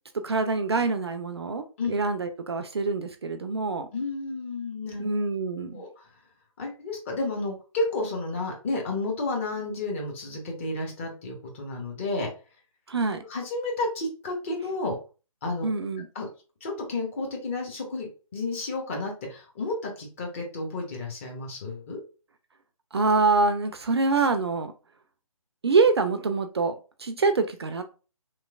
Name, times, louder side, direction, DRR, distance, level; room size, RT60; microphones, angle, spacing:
voice 1, 0.1-3.9 5.0-5.8 12.9-13.2 15.6-16.1 22.9-24.7 25.6-27.8, right 3 dB, 45° right, 8 dB, 0.4 m, -25 dB
voice 2, 3.9-5.1 5.7-6.1 6.6-12.3 13.3-15.0 15.4-15.7 16.1-16.3 16.6-22.0, left 2 dB, 20° left, 0 dB, 0.8 m, -31 dB
3.0 x 2.9 x 2.3 m, 0.34 s
figure-of-eight pair, 145°, 18 cm